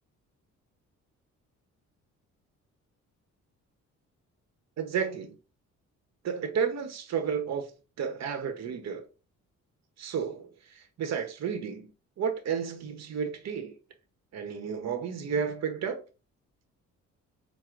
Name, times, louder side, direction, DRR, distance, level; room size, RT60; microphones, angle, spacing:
voice 1, 4.8-5.4 6.2-7.7 8.0-9.0 10.0-11.9 12.2-13.8 14.3-16.0, right 7 dB, 60° right, 1.0 m, -32 dB
4.4 x 2.2 x 3.8 m
cardioid pair, 90°, 30 cm